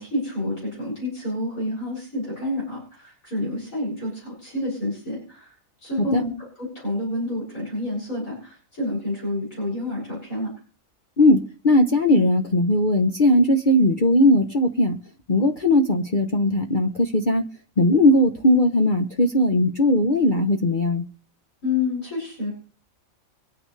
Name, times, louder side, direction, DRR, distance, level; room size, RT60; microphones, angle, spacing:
voice 1, 0.0-5.5 5.8-6.3 6.6-10.5 21.6-22.5, left 2 dB, 80° left, -5 dB, 7.8 m, -29 dB
voice 2, 11.2-15.0 15.3-17.4 17.8-21.0, left 1 dB, 40° left, 3 dB, 1.1 m, -19 dB
24.5 x 9.7 x 3.3 m, 0.39 s
omnidirectional pair, 1.4 m